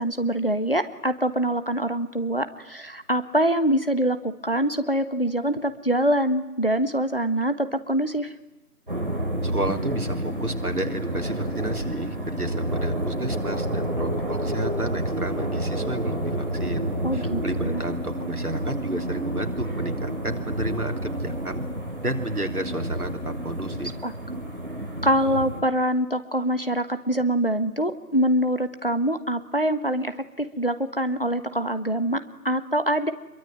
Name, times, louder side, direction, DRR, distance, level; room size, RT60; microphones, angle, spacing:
voice 1, 0.0-8.3 17.0-17.8 24.0-24.1 25.0-33.1, right 1 dB, 35° left, 11 dB, 1.2 m, -24 dB
sound 1, 8.9-25.6, right 1 dB, 35° right, 3.5 m, -29 dB
voice 2, 9.4-16.9 17.1-21.6 22.0-23.9, right 1 dB, 65° right, 4 dB, 3.5 m, -31 dB
26.0 x 23.0 x 9.2 m, 0.94 s
figure-of-eight pair, 175°, 47 cm